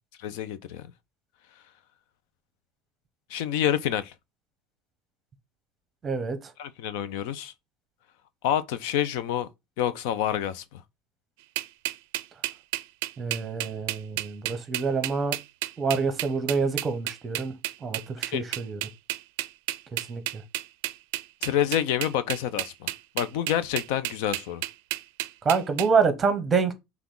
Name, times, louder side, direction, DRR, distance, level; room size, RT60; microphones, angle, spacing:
voice 1, 0.2-0.8 3.3-4.1 6.6-7.5 8.4-9.5 9.8-10.8 18.3-18.4 21.4-24.6, left 10 dB, 75° left, 0.5 m, -28 dB
voice 2, 6.0-6.5 13.2-15.4 15.8-17.6 17.8-18.8 19.9-20.4 25.4-26.7, right 5 dB, 20° right, 0.9 m, -27 dB
sound 1, 11.6-25.9, right 17 dB, 80° right, 0.4 m, -31 dB
5.8 x 2.3 x 3.7 m
cardioid pair, 150°, 0 cm